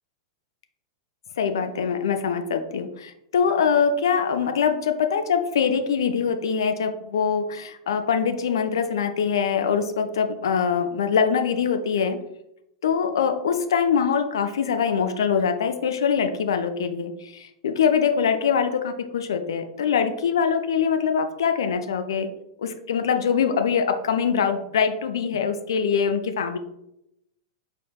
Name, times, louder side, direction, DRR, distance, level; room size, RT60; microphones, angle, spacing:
voice 1, 1.4-12.2 12.8-22.3 22.6-26.6, left 6 dB, 60° left, 7 dB, 0.5 m, -23 dB
4.5 x 4.4 x 2.3 m, 0.83 s
figure-of-eight pair, 95°, 3 cm